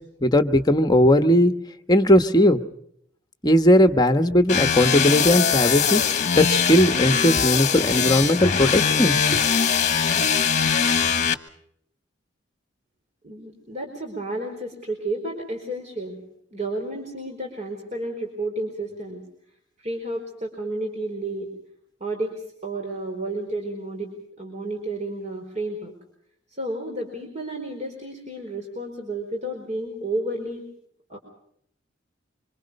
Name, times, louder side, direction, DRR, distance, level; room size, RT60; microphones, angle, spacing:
voice 1, 0.2-1.5 1.9-2.6 3.4-6.0 6.4-9.4, left 1 dB, 20° left, 8 dB, 1.2 m, -18 dB
sound 1, 4.5-11.3, left 7 dB, 40° left, 1.3 m, -21 dB
voice 2, 13.2-16.2 16.5-19.2 19.8-21.5 22.0-24.1 24.4-25.9 26.5-30.7 31.1-31.2, right 1 dB, 40° right, 2 dB, 4.6 m, -31 dB
26.0 x 26.0 x 5.4 m, 0.70 s
head